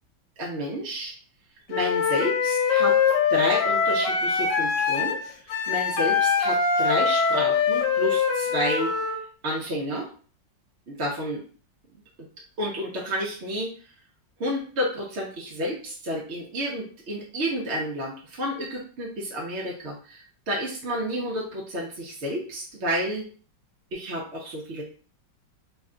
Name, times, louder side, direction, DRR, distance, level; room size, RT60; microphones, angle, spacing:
voice 1, 0.4-1.1 1.7-3.0 3.3-5.2 5.5-8.9 9.4-10.1 10.9-11.4 12.6-13.7 14.4-23.2 23.9-24.8, equal, 60° right, -3 dB, 0.7 m, -30 dB
Wind instrument woodwind instrument, 1.7-9.2, left 6 dB, 75° left, 1.3 m, -23 dB
3.2 x 2.2 x 3.7 m, 0.43 s
omnidirectional pair, 2.0 m